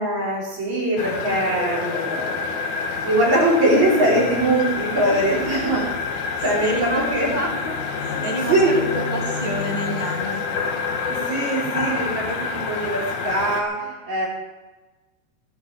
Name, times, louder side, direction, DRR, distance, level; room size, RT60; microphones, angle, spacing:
voice 1, 0.0-2.4 3.0-5.8 6.4-7.3 8.1-8.2 8.5-8.7 11.1-12.4 12.7-14.3, right 1 dB, 65° right, -6 dB, 6.5 m, -22 dB
sound 1, 1.0-13.6, left 5 dB, 85° left, 2.9 m, -27 dB
voice 2, 5.0-5.8 6.4-10.5, right 1 dB, 15° left, -1 dB, 1.9 m, -30 dB
18.5 x 11.0 x 5.2 m, 1.2 s
omnidirectional pair, 3.4 m